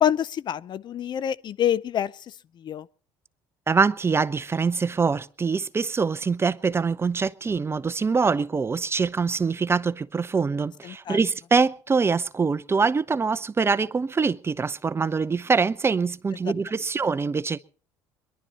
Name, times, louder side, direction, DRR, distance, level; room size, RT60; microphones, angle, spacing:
voice 1, 0.0-2.9 10.8-11.2, left 10 dB, 50° left, 0.6 m, -27 dB
voice 2, 3.7-17.6, right 5 dB, 25° right, 0.6 m, -24 dB
22.5 x 11.5 x 4.2 m
supercardioid pair, 75°, 10 cm